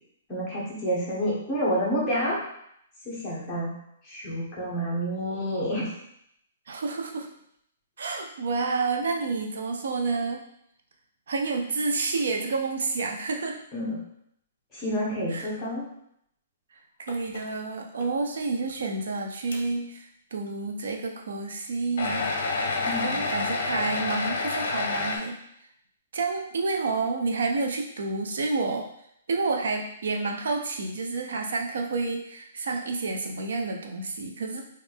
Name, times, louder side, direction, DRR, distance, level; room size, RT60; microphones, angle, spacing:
voice 1, 0.3-2.4 3.1-3.7 4.1-5.9 13.7-14.0 14.7-15.9 22.8-23.2, equal, 10° left, -7 dB, 1.1 m, -29 dB
voice 2, 6.7-7.3 8.0-10.4 11.3-13.6 15.3-15.5 17.0-22.3 23.0-25.4 26.1-28.9 29.3-34.6, right 3 dB, 70° right, 2 dB, 0.5 m, -29 dB
sound 1, 17.1-17.5 17.9-18.0 18.7-18.8 19.5-19.6 22.0-25.2, left 3 dB, 50° left, 0.7 m, -28 dB
4.0 x 2.5 x 3.5 m, 0.73 s
hypercardioid pair, 175°, 0 cm